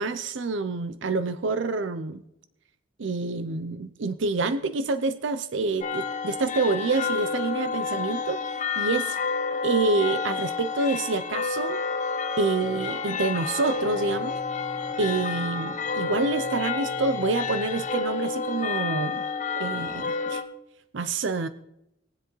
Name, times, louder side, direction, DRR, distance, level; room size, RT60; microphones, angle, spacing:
voice 1, 0.0-2.2 3.0-8.4 8.8-9.2 9.6-11.8 12.4-14.4 15.0-19.2 19.6-20.4 20.9-21.5, right 3 dB, 65° right, 12 dB, 0.6 m, -27 dB
sound 1, 5.8-20.4, left 5 dB, 40° left, 0.8 m, -30 dB
20.5 x 7.8 x 3.1 m, 0.82 s
head